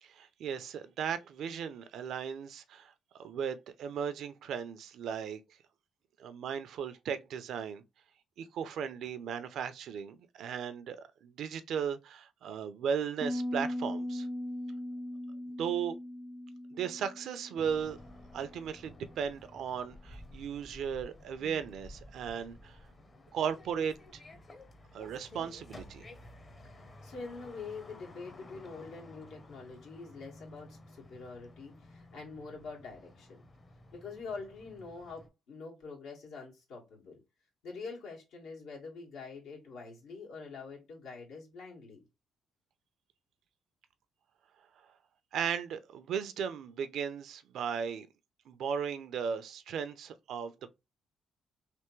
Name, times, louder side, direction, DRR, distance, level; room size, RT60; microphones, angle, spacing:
voice 1, 0.0-2.9 3.2-5.4 6.2-7.8 8.4-14.3 15.6-16.0 16.7-18.0 18.3-22.8 23.3-24.2 24.9-26.0 45.3-48.1 48.5-50.7, right 7 dB, 75° right, 0.5 m, -36 dB
Piano, 13.2-18.8, left 1 dB, 20° right, 0.4 m, -39 dB
sound 1, 17.6-35.3, left 1 dB, 35° left, 0.8 m, -53 dB
voice 2, 27.0-33.4 33.9-37.2 37.6-42.0, left 4 dB, 85° left, 1.8 m, -45 dB
3.4 x 2.9 x 3.1 m
cardioid pair, 90°, 0 cm